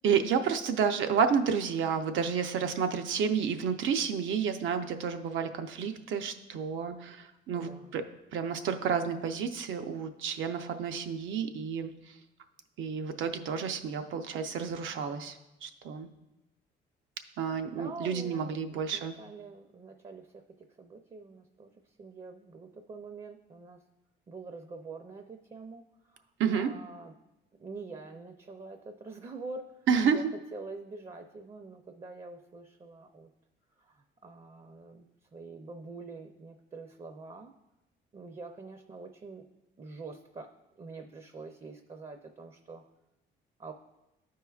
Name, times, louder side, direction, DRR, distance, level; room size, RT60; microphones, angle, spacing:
voice 1, 0.0-8.0 8.3-12.2 12.8-16.1 17.4-19.1 26.4-26.7 29.9-30.2, right 6 dB, 75° right, 7 dB, 0.6 m, -30 dB
voice 2, 7.5-7.9 17.7-23.8 24.3-26.3 26.5-27.1 27.6-29.7 30.0-30.2 30.5-33.3 33.8-35.1 35.3-37.5 38.1-39.4 39.8-40.5 40.8-42.8 43.6-43.7, right 3 dB, 30° right, 6 dB, 0.5 m, -45 dB
13.0 x 4.6 x 2.3 m, 0.95 s
cardioid pair, 90°, 20 cm